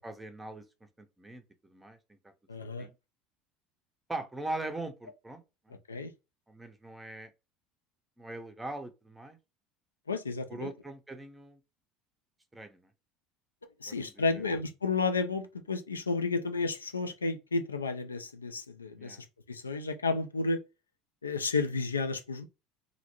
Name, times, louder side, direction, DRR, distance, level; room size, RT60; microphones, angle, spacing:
voice 1, 0.0-0.6 1.0-2.0 2.2-2.3 2.8-2.9 4.1-5.8 6.5-7.3 8.2-9.4 10.5-11.6 12.5-12.9 13.9-14.5 19.0-19.2, right 2 dB, 15° right, 0.5 m, -41 dB
voice 2, 2.5-2.9 5.9-6.1 10.1-10.7 13.8-19.2 19.5-20.6 21.2-22.4, left 3 dB, 85° left, 0.3 m, -32 dB
2.5 x 2.0 x 2.9 m
figure-of-eight pair, 70°, 0 cm